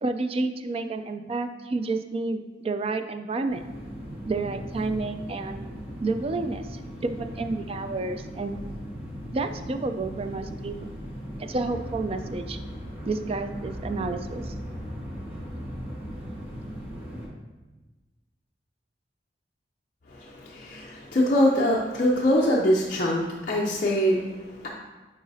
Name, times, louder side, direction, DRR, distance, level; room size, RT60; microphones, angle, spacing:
voice 1, 0.0-3.6 4.3-5.6 6.0-8.6 9.3-10.7 11.4-12.6 13.1-14.5, right 3 dB, 35° right, 8 dB, 0.3 m, -30 dB
sound 1, 3.5-17.3, equal, 10° right, 1.3 m, -38 dB
voice 2, 20.1-24.7, equal, 45° left, -4 dB, 0.6 m, -24 dB
9.8 x 4.0 x 2.7 m, 1.2 s
head